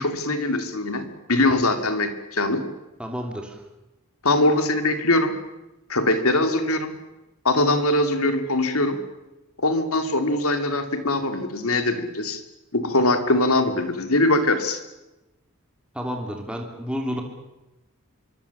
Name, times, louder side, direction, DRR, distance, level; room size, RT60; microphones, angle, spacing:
voice 1, 0.0-2.6 4.2-5.3 5.9-6.9 7.4-9.0 9.6-12.4 12.7-14.8, left 2 dB, 85° left, 8 dB, 2.7 m, -22 dB
voice 2, 3.0-3.6 15.9-17.2, equal, 5° right, 2 dB, 3.2 m, -30 dB
25.5 x 23.5 x 7.2 m, 1.0 s
head